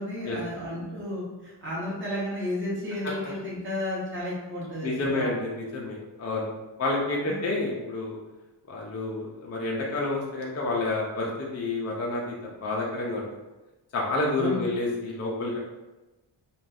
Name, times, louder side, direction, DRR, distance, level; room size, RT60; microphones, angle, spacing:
voice 1, 0.0-5.3 7.3-7.4 14.4-14.7, left 1 dB, 25° right, -7 dB, 0.9 m, -32 dB
voice 2, 4.8-6.5 6.8-8.2 8.7-13.2 13.9-15.6, left 2 dB, 35° left, -3 dB, 0.4 m, -29 dB
2.5 x 2.3 x 3.3 m, 1.1 s
wide cardioid pair, 165°, 47 cm